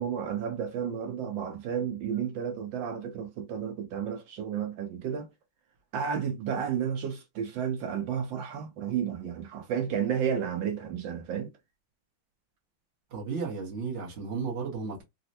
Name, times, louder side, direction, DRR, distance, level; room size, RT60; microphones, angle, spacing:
voice 1, 0.0-5.3 5.9-11.5, right 8 dB, 75° right, 1.2 m, -32 dB
voice 2, 13.1-15.0, right 5 dB, 50° right, 0.8 m, -34 dB
4.1 x 2.0 x 2.7 m
omnidirectional pair, 2.3 m